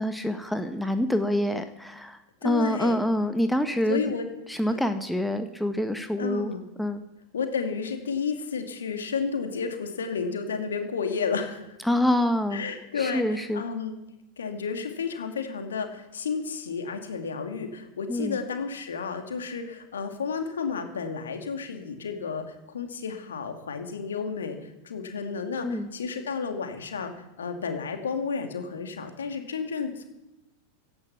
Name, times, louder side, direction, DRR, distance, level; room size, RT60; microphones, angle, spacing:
voice 1, 0.0-2.2 2.4-4.1 4.5-6.5 6.8-7.0 11.8-12.6 13.0-13.6 18.1-18.4 25.6-25.9, left 1 dB, ahead, 8 dB, 1.1 m, -26 dB
voice 2, 2.4-3.0 3.9-4.3 4.7-4.8 6.2-6.6 7.3-11.8 12.5-14.0 14.4-27.1 27.4-30.0, left 5 dB, 65° left, 5 dB, 2.5 m, -32 dB
17.0 x 14.0 x 5.9 m, 0.94 s
figure-of-eight pair, 90°, 0 cm